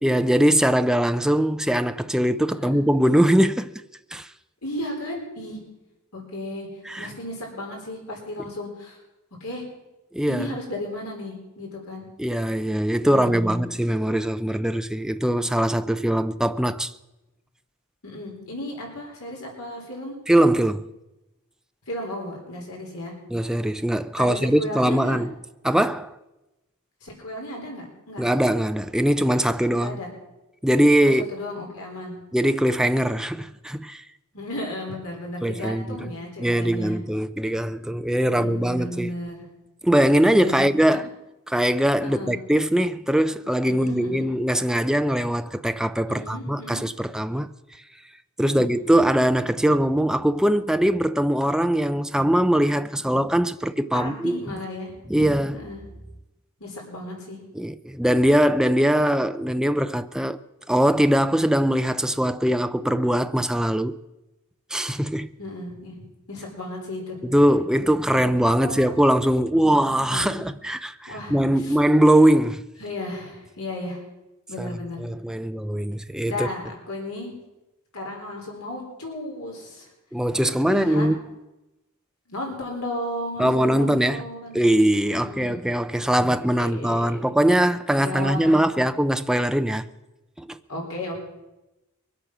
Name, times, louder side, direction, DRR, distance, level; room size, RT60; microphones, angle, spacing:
voice 1, 0.0-3.7 4.1-4.3 6.9-7.1 10.1-10.5 12.2-16.9 20.3-20.9 23.3-25.3 25.6-26.1 28.2-30.0 30.6-31.2 32.3-34.0 35.4-36.1 36.4-39.1 39.8-41.1 41.5-47.5 48.4-54.4 55.1-55.6 57.6-60.4 60.7-64.0 64.7-65.3 67.2-72.7 74.6-74.7 75.0-76.5 80.1-81.2 83.4-84.2 84.5-89.9 90.4-90.6, right 1 dB, 5° right, 0.4 m, -21 dB
voice 2, 2.5-2.8 4.6-5.6 6.1-6.7 7.0-9.0 9.4-9.6 10.3-12.0 13.0-13.6 18.0-20.2 21.9-23.1 24.2-25.2 27.0-28.2 29.8-30.1 31.0-32.2 34.3-37.0 38.2-39.5 40.3-41.0 42.0-42.4 43.7-44.3 46.1-46.9 48.4-48.7 53.9-54.9 55.5-55.8 56.6-57.4 65.4-66.0 66.3-67.2 68.5-69.0 69.5-70.4 71.1-71.8 72.8-74.0 74.5-75.0 76.3-77.3 77.9-79.9 80.7-81.1 82.3-84.6 85.1-85.6 86.1-87.2 88.0-88.8 90.7-91.2, left 1 dB, 75° left, 4.2 m, -34 dB
22.5 x 8.3 x 6.1 m
head